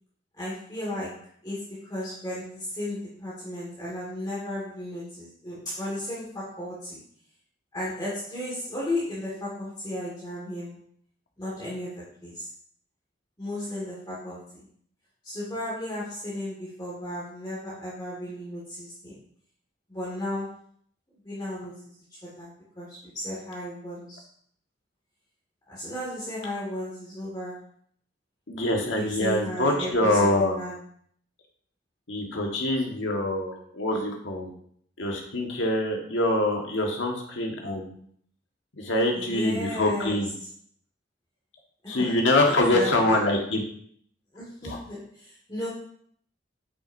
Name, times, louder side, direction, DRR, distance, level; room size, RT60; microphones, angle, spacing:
voice 1, 0.3-7.0 7.7-10.8 11.4-12.5 13.4-14.6 15.2-19.2 19.9-20.5 21.2-21.9 22.2-24.2 25.7-27.7 29.0-30.8 39.1-40.2 41.8-42.2 42.5-43.2 44.3-45.7, left 1 dB, 20° left, -8 dB, 1.8 m, -35 dB
voice 2, 28.5-30.6 32.1-34.5 35.0-38.0 38.8-40.3 41.9-43.6 44.6-44.8, left 1 dB, 75° left, 1 dB, 1.5 m, -25 dB
8.2 x 6.2 x 2.6 m, 0.63 s
head